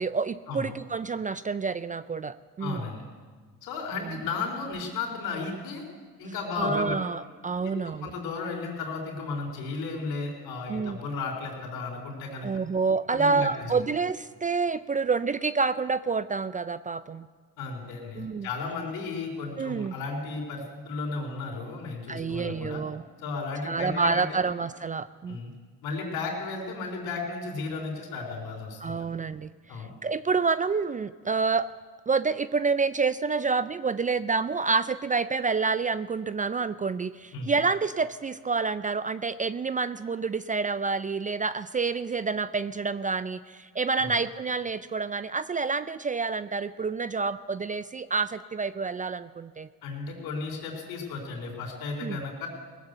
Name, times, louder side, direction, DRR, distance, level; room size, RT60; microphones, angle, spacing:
voice 1, 0.0-2.9 3.9-4.1 6.6-8.1 10.7-11.0 12.4-17.3 18.2-18.5 19.6-19.9 22.1-23.0 23.6-25.4 28.8-31.7 32.1-49.7 52.0-52.2, right 4 dB, 20° right, 14 dB, 0.4 m, -28 dB
voice 2, 2.6-3.1 3.6-5.8 6.2-6.9 7.6-12.5 13.1-13.8 17.6-22.8 23.2-24.5 25.3-25.5 25.8-29.2 29.7-29.9 37.3-37.5 44.0-44.1 49.8-52.5, left 4 dB, 75° left, 1 dB, 3.7 m, -34 dB
18.5 x 7.3 x 8.0 m, 1.6 s
supercardioid pair, 70°, 36 cm